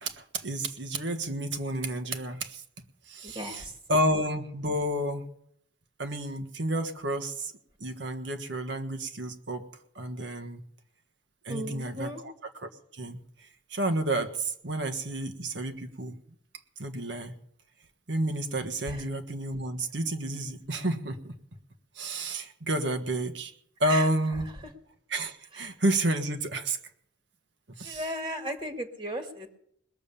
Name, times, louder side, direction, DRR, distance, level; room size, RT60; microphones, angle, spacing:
voice 1, 0.0-2.6 3.1-3.6 3.9-5.3 6.0-7.5 7.8-9.7 9.9-10.6 11.4-12.1 12.6-16.1 16.8-17.4 18.1-21.3 21.9-23.5 23.8-24.5 25.1-26.8 27.8-28.0, right 1 dB, 75° right, 7 dB, 1.4 m, -30 dB
voice 2, 3.2-3.7 11.5-12.2 18.9-19.0 23.8-24.1 24.6-24.7 25.5-25.6 27.8-29.6, right 1 dB, 25° right, 4 dB, 1.6 m, -36 dB
20.5 x 7.2 x 7.0 m, 0.69 s
head